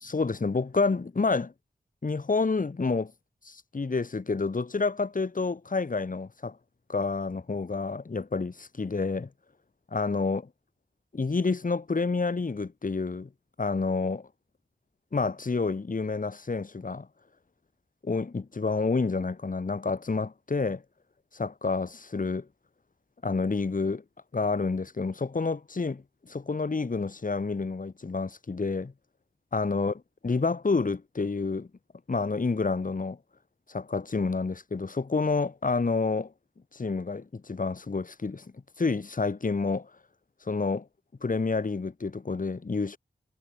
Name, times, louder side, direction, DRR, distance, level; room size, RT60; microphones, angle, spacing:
voice 1, 0.0-1.5 2.0-3.1 3.4-6.6 6.9-9.3 9.9-10.5 11.1-13.3 13.6-14.3 15.1-17.1 18.0-20.8 21.3-22.5 23.2-24.0 24.3-26.0 26.3-28.9 29.5-31.7 32.1-33.2 33.7-36.3 36.7-38.4 38.8-39.9 40.5-40.9 41.2-43.0, left 4 dB, 50° left, 1.6 m, -29 dB
cardioid pair, 50°, 18 cm